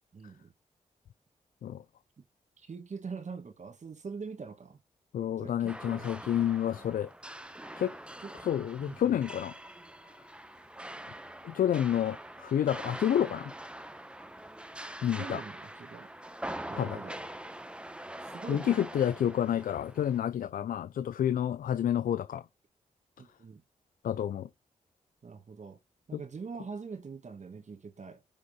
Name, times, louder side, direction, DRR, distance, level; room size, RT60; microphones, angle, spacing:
voice 1, 0.1-0.5 2.6-4.8 5.4-6.1 8.2-8.3 8.9-9.2 15.2-16.1 16.7-17.2 18.2-18.8 23.2-23.6 25.2-25.8 26.1-28.2, right 5 dB, 50° right, 1.5 m, -43 dB
voice 2, 5.1-7.1 7.8-7.9 8.4-9.5 11.4-13.5 15.0-15.4 16.8-17.0 18.5-22.4 24.0-24.5 26.1-26.2, left 10 dB, 70° left, 0.4 m, -29 dB
sound 1, 5.7-20.2, right 1 dB, 5° right, 0.9 m, -44 dB
5.4 x 3.6 x 5.6 m
supercardioid pair, 40°, 15 cm